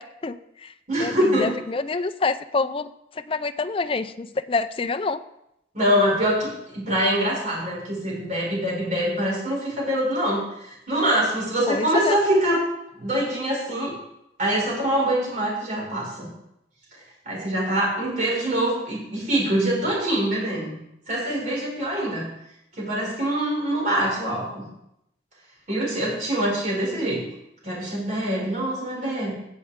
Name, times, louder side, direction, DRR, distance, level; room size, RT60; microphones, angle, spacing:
voice 1, 0.0-5.2 11.7-12.2, left 3 dB, 30° left, 11 dB, 0.4 m, -27 dB
voice 2, 0.9-1.5 5.7-12.6 13.0-13.9 14.4-16.3 17.3-20.8 21.1-22.3 22.8-24.7 25.7-27.2 27.6-29.3, right 1 dB, 45° right, -4 dB, 5.1 m, -24 dB
16.5 x 7.3 x 3.6 m, 0.82 s
head